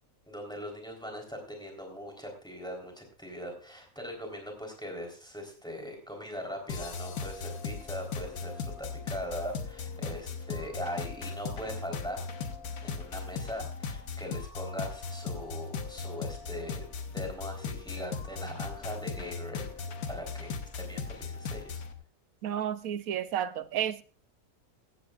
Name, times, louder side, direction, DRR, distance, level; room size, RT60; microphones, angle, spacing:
voice 1, 0.3-12.2 12.8-16.9 17.1-19.7 20.1-21.8, equal, 5° left, 3.6 m, -40 dB
sound 1, 6.7-21.9, left 5 dB, 90° left, 1.7 m, -38 dB
voice 2, 22.4-24.0, right 10 dB, 75° right, 1.1 m, -31 dB
15.5 x 15.0 x 2.4 m
omnidirectional pair, 1.5 m